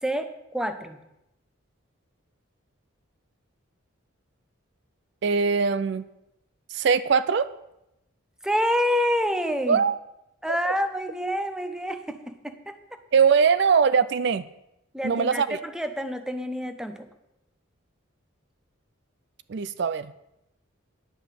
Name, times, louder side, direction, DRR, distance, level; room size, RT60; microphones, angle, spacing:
voice 1, 0.0-1.0 8.4-9.8 10.4-12.7 14.9-17.1, equal, 5° right, 8 dB, 0.7 m, -28 dB
voice 2, 5.2-6.0 6.7-7.5 9.7-10.0 13.1-14.4 15.0-15.6 19.5-20.1, right 6 dB, 55° right, 15 dB, 0.4 m, -21 dB
10.0 x 5.7 x 8.1 m, 0.88 s
head